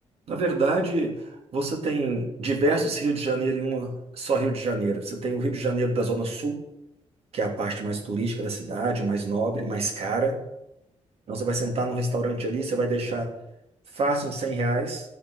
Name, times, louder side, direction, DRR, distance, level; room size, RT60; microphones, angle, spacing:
voice 1, 0.3-1.1 1.5-6.6 7.3-10.4 11.3-13.3 13.9-15.0, right 2 dB, 65° right, 3 dB, 3.0 m, -26 dB
13.0 x 8.8 x 6.5 m, 0.86 s
wide cardioid pair, 150°, 11 cm